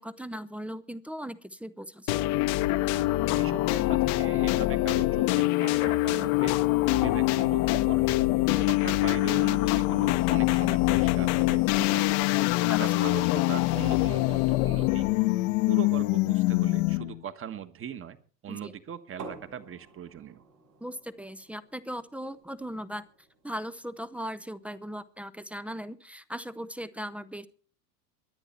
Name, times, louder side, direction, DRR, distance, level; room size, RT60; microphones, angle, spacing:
voice 1, 0.0-2.3 8.5-8.7 12.7-12.8 18.5-18.7 20.8-23.1 23.4-27.5, equal, 5° right, 12 dB, 0.6 m, -38 dB
sound 1, 2.1-17.2, left 19 dB, 55° left, 1.0 m, -24 dB
voice 2, 3.3-6.6 6.9-8.2 8.7-12.2 12.8-15.1 15.7-18.2 18.4-20.4, right 8 dB, 25° right, 12 dB, 1.4 m, -40 dB
sound 2, 19.2-24.8, right 4 dB, 85° right, 5.2 m, -51 dB
23.5 x 8.9 x 4.3 m, 0.40 s
hypercardioid pair, 100°, 50 cm